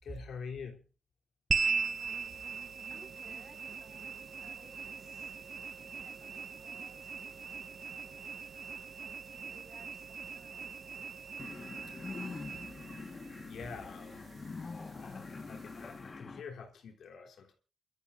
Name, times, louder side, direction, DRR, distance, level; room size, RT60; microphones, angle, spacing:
voice 1, 0.0-0.9 13.4-14.3 14.9-17.5, left 5 dB, 80° left, 3.3 m, -46 dB
sound 1, 1.5-16.1, right 5 dB, 55° right, 1.0 m, -40 dB
voice 2, 2.0-2.6 2.9-5.4 5.7-11.0, right 3 dB, 30° right, 5.2 m, -61 dB
sound 2, 11.4-16.4, left 4 dB, 35° left, 1.5 m, -44 dB
30.0 x 13.5 x 2.6 m
wide cardioid pair, 125°, 0 cm